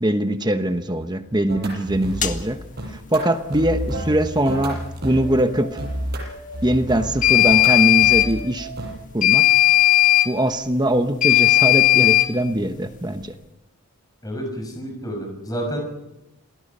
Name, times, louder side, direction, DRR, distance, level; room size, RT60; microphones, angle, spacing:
voice 1, 0.0-2.6 3.1-5.8 6.6-8.7 9.1-9.4 10.2-13.3, right 1 dB, 20° right, 8 dB, 1.0 m, -22 dB
sound 1, 1.5-2.4 2.8-9.0, right 1 dB, 45° right, 7.8 m, -30 dB
sound 2, 2.2-2.4 7.2-8.3 9.2-10.3 11.2-12.3, left 16 dB, 35° left, 1.8 m, -15 dB
voice 2, 14.2-15.8, equal, 15° left, 1 dB, 6.4 m, -29 dB
28.0 x 19.0 x 5.6 m, 0.93 s
head